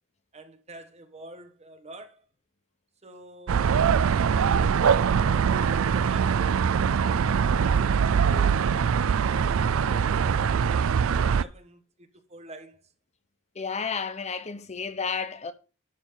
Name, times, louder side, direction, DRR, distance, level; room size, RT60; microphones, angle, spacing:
voice 1, 0.3-2.3 3.0-7.0 7.6-12.9, right 1 dB, 30° right, 1.3 m, -47 dB
sound 1, 3.5-11.4, right 7 dB, 75° right, 0.4 m, -23 dB
voice 2, 13.6-15.5, left 5 dB, 30° left, 0.7 m, -31 dB
12.0 x 4.5 x 5.6 m
head